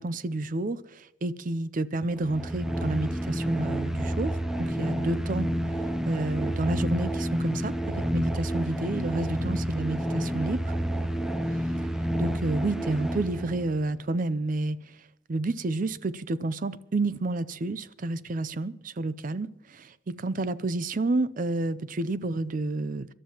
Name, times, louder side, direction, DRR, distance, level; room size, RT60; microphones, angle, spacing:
voice 1, 0.0-5.5 6.1-10.7 12.2-14.8 15.3-23.1, right 2 dB, 40° right, 0.5 m, -30 dB
sound 1, 2.1-13.8, equal, 5° right, 0.6 m, -29 dB
25.5 x 12.0 x 2.9 m
head